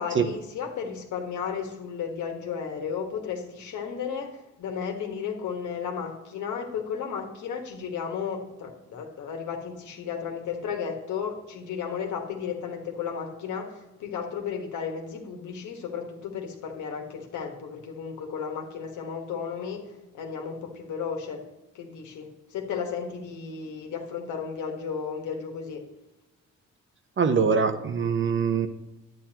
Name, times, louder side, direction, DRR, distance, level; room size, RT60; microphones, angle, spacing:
voice 1, 0.0-19.8 20.1-21.4 21.7-25.8, left 6 dB, 80° left, 3 dB, 1.7 m, -34 dB
voice 2, 27.2-28.7, right 6 dB, 40° right, 8 dB, 0.9 m, -23 dB
10.5 x 9.1 x 3.0 m, 1.0 s
cardioid pair, 90°, 30 cm